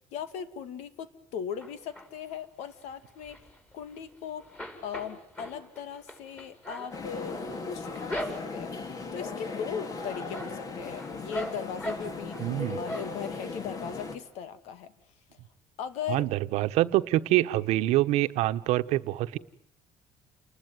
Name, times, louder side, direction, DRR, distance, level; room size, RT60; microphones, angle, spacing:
voice 1, 0.1-3.5 3.7-4.4 4.8-7.4 7.7-8.2 8.5-8.7 9.1-14.9 15.8-16.3, left 8 dB, 80° left, 13 dB, 2.3 m, -38 dB
sound 1, 1.6-2.4 2.8-4.1 4.4-8.8 9.3-9.7 10.0-12.5 12.8-13.5 13.9-14.0 14.3-14.4, equal, 15° left, 5.1 m, -40 dB
sound 2, 6.9-14.2, left 3 dB, 30° left, 2.3 m, -38 dB
voice 2, 12.4-12.8 16.1-19.4, right 16 dB, 75° right, 10 dB, 1.2 m, -25 dB
29.5 x 20.5 x 9.3 m, 0.67 s
cardioid pair, 165°, 11 cm